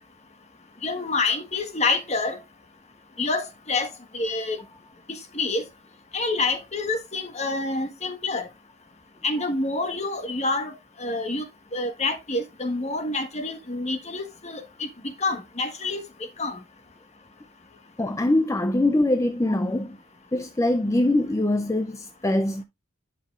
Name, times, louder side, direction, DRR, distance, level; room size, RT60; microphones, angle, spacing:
voice 1, 0.8-2.4 3.2-4.6 5.1-5.6 6.1-8.5 9.2-11.5 11.7-14.9 15.2-16.0 16.4-16.6, left 3 dB, 30° left, 1.3 m, -27 dB
voice 2, 18.0-20.0 20.3-22.6, left 1 dB, 15° left, 0.4 m, -23 dB
11.0 x 5.3 x 2.4 m
head